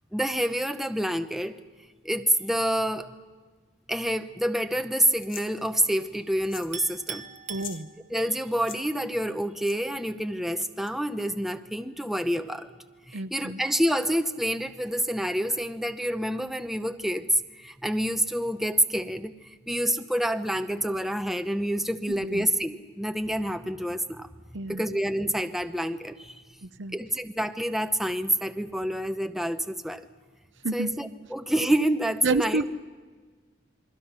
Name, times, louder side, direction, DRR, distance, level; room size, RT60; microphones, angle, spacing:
voice 1, 0.1-1.6 2.0-3.1 3.9-7.3 8.1-12.7 13.1-19.3 19.7-24.3 24.7-26.4 26.9-30.1 30.7-32.6, equal, ahead, 8 dB, 0.8 m, -27 dB
sound 1, 5.2-5.5 6.4-6.8 7.0-7.1 7.5-7.8 8.5-8.8 9.6-9.8 10.5-10.9, left 9 dB, 85° left, 1.5 m, -42 dB
Chink clink, 6.7-8.4, right 7 dB, 35° right, 1.0 m, -40 dB
voice 2, 7.5-7.9 13.1-13.6 22.1-22.5 24.5-24.9 26.6-27.0 30.6-30.9 32.2-32.7, right 2 dB, 70° right, 11 dB, 0.8 m, -29 dB
28.5 x 23.0 x 5.8 m, 1.4 s
head